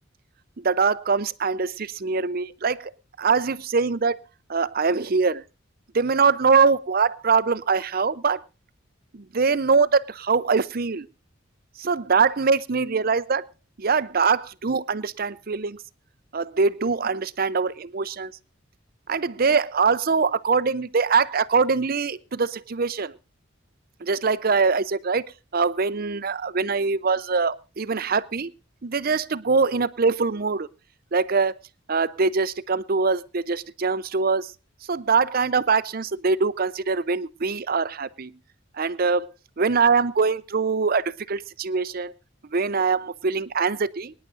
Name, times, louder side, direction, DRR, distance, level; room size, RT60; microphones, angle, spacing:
voice 1, 0.6-2.9 3.2-4.2 4.5-5.4 5.9-8.4 9.1-11.1 11.8-13.4 13.8-15.8 16.3-18.3 19.1-23.2 24.0-25.2 25.5-28.5 28.8-30.7 31.1-31.5 31.9-34.5 34.9-38.3 38.8-39.3 39.6-42.1 42.5-44.1, right 5 dB, 45° right, 15 dB, 0.6 m, -23 dB
24.5 x 10.5 x 2.6 m, 0.31 s
head